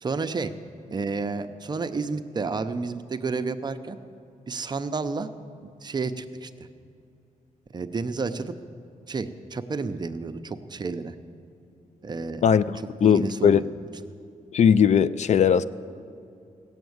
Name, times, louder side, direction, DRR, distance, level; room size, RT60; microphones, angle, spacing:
voice 1, 0.0-0.5 0.9-4.0 4.5-5.3 5.6-6.5 7.7-8.6 9.1-11.2 12.0-12.4 13.0-13.6, right 4 dB, 30° right, 9 dB, 0.6 m, -30 dB
voice 2, 12.4-13.6 14.5-15.6, left 7 dB, 60° left, 15 dB, 0.4 m, -19 dB
17.0 x 7.2 x 9.4 m, 2.6 s
wide cardioid pair, 155°, 14 cm